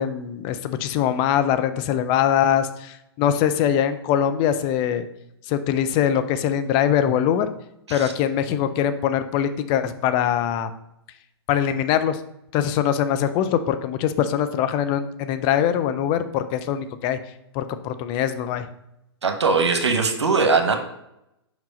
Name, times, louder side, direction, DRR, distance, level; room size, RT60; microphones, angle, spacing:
voice 1, 0.0-5.1 5.5-7.5 7.9-10.7 11.5-12.2 12.5-17.2 17.5-18.7, left 9 dB, 35° left, 10 dB, 0.6 m, -22 dB
voice 2, 19.2-20.8, right 4 dB, 90° right, 5 dB, 1.0 m, -20 dB
5.3 x 4.9 x 5.2 m, 0.83 s
hypercardioid pair, 125°, 14 cm